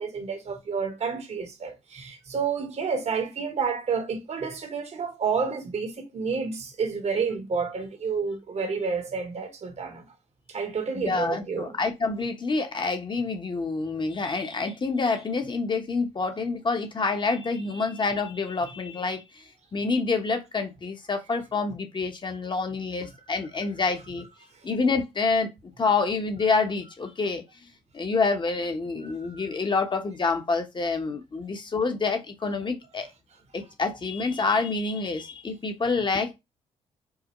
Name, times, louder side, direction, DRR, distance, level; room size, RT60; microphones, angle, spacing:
voice 1, 0.0-10.0 10.5-11.8 29.0-29.4, right 5 dB, 50° right, 1.1 m, -30 dB
voice 2, 10.9-19.4 19.7-24.3 24.6-25.5 25.8-27.4 27.9-33.1 33.5-36.4, left 4 dB, 35° left, 1.0 m, -27 dB
4.7 x 2.1 x 3.0 m
supercardioid pair, 65°, 14 cm